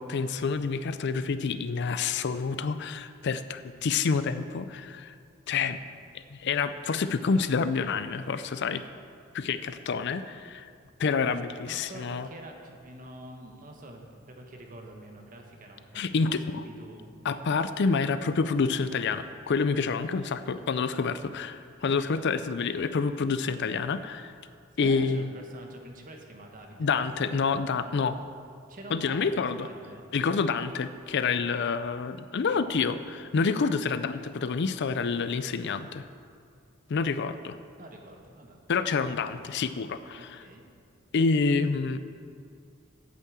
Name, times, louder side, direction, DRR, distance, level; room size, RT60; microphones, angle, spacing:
voice 1, 0.1-5.1 5.5-5.8 6.1-8.8 9.3-10.7 11.0-12.3 15.9-16.6 17.2-24.3 24.8-25.3 26.8-28.2 28.9-29.7 30.1-36.1 36.9-37.6 38.7-40.4 41.1-42.0, left 5 dB, 55° left, 12 dB, 0.4 m, -28 dB
voice 2, 11.7-17.1 22.3-22.4 24.7-26.9 28.7-30.1 37.8-38.6 40.2-40.6, right 1 dB, 40° right, 2 dB, 1.3 m, -46 dB
8.4 x 8.4 x 7.4 m, 2.3 s
head